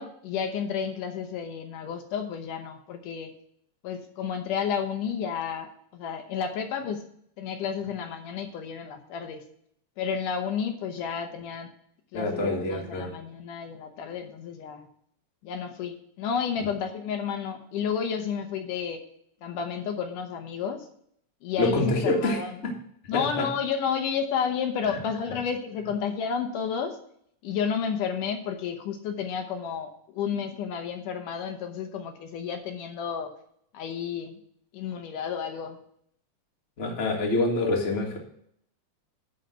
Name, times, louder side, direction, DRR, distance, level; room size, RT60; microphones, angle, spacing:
voice 1, 0.0-3.3 3.8-7.0 7.4-9.4 10.0-11.7 12.1-14.9 15.4-19.0 19.4-20.9 21.4-22.5 23.1-27.0 27.4-33.3 33.7-34.4 34.7-35.8, left 7 dB, 75° left, 6 dB, 2.4 m, -31 dB
voice 2, 12.1-13.1 21.6-22.7 23.1-23.4 24.8-25.0 36.8-38.2, left 2 dB, 30° left, -1 dB, 1.4 m, -26 dB
11.0 x 4.1 x 7.7 m, 0.67 s
omnidirectional pair, 3.8 m